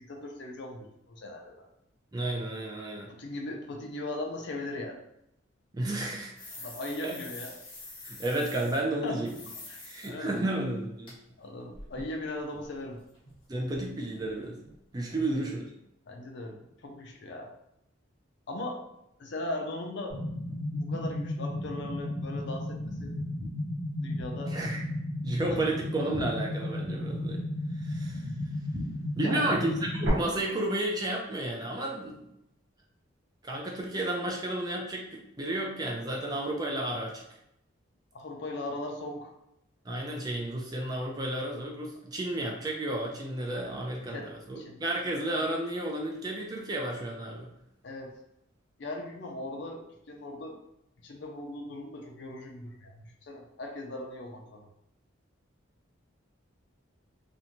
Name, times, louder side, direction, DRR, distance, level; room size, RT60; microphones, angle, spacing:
voice 1, 0.0-1.7 3.1-5.0 6.5-7.5 9.0-9.3 9.7-10.4 11.4-13.0 16.1-17.5 18.5-18.8 19.2-20.2 20.7-23.1 24.0-24.5 25.5-25.6 29.2-29.6 38.1-39.3 44.1-44.8 47.8-48.1 48.8-50.6 51.0-54.7, left 2 dB, 60° left, 2 dB, 0.4 m, -39 dB
voice 2, 2.1-3.1 5.7-6.5 7.0-7.1 8.0-9.3 9.8-11.2 13.5-14.6 14.9-15.7 24.1-24.2 24.5-24.9 25.2-27.5 27.8-28.2 29.2-32.2 33.4-37.2 39.9-47.5, right 1 dB, 20° right, -1 dB, 0.3 m, -32 dB
sound 1, 6.4-8.8 9.2-10.1 10.3-10.4 11.1-11.2 11.4-13.4 13.7-13.9 14.2-14.3 14.6-14.8 15.1-15.2, left 2 dB, 25° left, 0.8 m, -46 dB
sound 2, 20.1-30.1, left 1 dB, 60° right, 0.9 m, -34 dB
2.5 x 2.1 x 2.9 m, 0.80 s
head